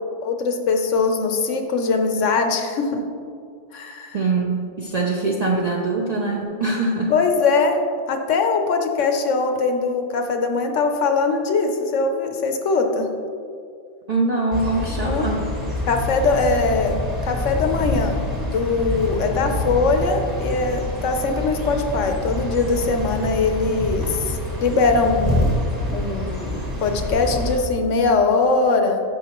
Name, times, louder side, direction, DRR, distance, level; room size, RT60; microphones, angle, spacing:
voice 1, 0.2-3.0 3.7-4.2 7.1-7.8 8.1-13.1 15.0-15.3 15.9-17.0 17.2-25.5 25.9-29.0, left 4 dB, 90° left, 5 dB, 1.1 m, -21 dB
voice 2, 4.1-7.1 14.1-15.5 19.3-19.8, right 3 dB, 40° right, -1 dB, 0.6 m, -23 dB
sound 1, 14.5-27.6, left 1 dB, 20° right, 1.4 m, -27 dB
10.5 x 6.4 x 3.0 m, 2.4 s
omnidirectional pair, 1.2 m